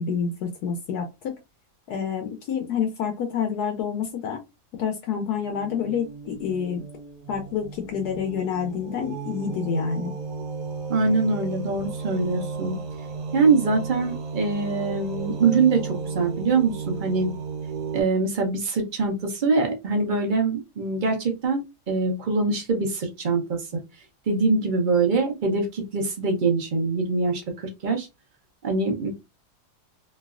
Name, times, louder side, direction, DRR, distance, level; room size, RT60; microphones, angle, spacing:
voice 1, 0.0-1.4 1.9-4.4 4.8-6.8 7.3-10.1, left 7 dB, 75° left, 4 dB, 1.0 m, -28 dB
sound 1, 5.4-18.0, right 5 dB, 70° right, 1.1 m, -34 dB
voice 2, 10.9-12.8 13.3-17.4 17.9-21.6 21.9-23.7 24.3-28.1 28.6-29.1, right 4 dB, 50° right, 3 dB, 0.6 m, -23 dB
3.1 x 2.6 x 2.3 m, 0.24 s
omnidirectional pair, 1.8 m